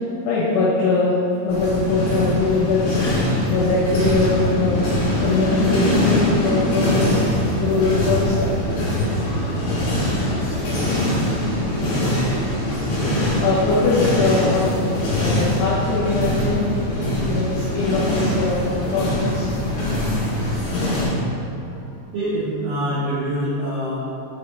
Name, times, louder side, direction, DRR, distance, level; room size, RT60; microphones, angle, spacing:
voice 1, 0.2-1.1 1.4-7.2 7.6-8.5 13.2-14.8 15.2-16.9 17.2-19.6 21.8-21.9, left 3 dB, 80° left, -7 dB, 2.3 m, -22 dB
sound 1, 1.5-21.0, left 1 dB, 65° left, 2.0 m, -22 dB
voice 2, 10.7-11.0 22.1-24.0, equal, 75° right, -12 dB, 2.0 m, -25 dB
7.1 x 4.7 x 3.3 m, 2.8 s
omnidirectional pair, 5.8 m